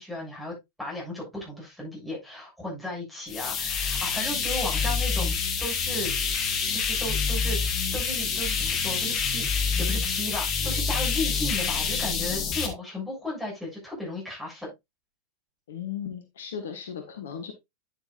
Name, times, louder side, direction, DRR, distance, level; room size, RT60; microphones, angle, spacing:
voice 1, 0.0-6.2 6.7-14.7, left 1 dB, ahead, -4 dB, 6.8 m, -35 dB
sound 1, 3.3-12.7, left 5 dB, 30° left, 2.0 m, -27 dB
voice 2, 15.7-17.5, left 8 dB, 60° left, 6 dB, 1.6 m, -36 dB
9.8 x 8.2 x 2.5 m, 0.20 s
figure-of-eight pair, 90°, 0 cm